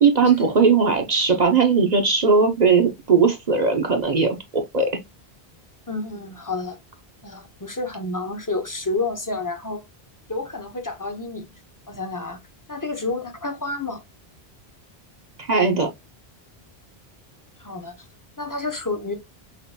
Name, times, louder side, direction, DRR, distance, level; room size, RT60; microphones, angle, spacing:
voice 1, 0.0-4.9 15.4-15.9, right 5 dB, 45° right, 0.8 m, -19 dB
voice 2, 5.9-6.8 7.2-9.8 10.3-11.5 11.9-12.4 12.7-14.0 17.6-18.0 18.4-19.1, left 3 dB, 20° left, 0.7 m, -29 dB
5.8 x 2.5 x 2.7 m
omnidirectional pair, 1.0 m